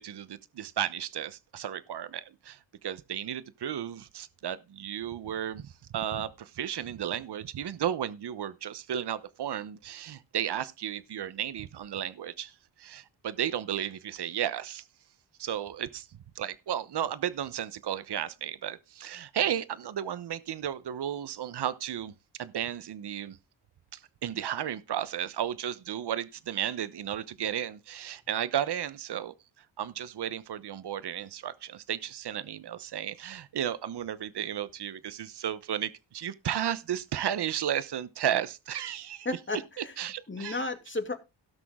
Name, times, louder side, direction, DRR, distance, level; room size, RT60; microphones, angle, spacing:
voice 1, 0.0-12.5 12.8-14.8 15.4-16.1 16.3-22.1 22.4-23.4 23.9-29.3 29.8-39.3 39.8-40.6, right 10 dB, 60° right, 1.0 m, -34 dB
voice 2, 39.2-40.0 40.3-41.2, left 2 dB, 25° left, 2.6 m, -33 dB
17.5 x 6.2 x 3.7 m
cardioid pair, 60°, 45 cm